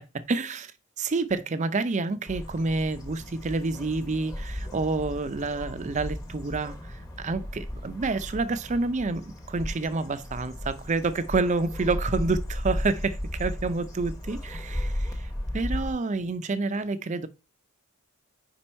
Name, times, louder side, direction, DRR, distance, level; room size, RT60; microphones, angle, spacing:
voice 1, 0.3-0.7 1.0-15.3 15.5-17.3, right 3 dB, 35° right, 0.4 m, -28 dB
sound 1, 2.2-15.9, left 1 dB, 15° left, 0.9 m, -35 dB
5.2 x 4.5 x 4.3 m
head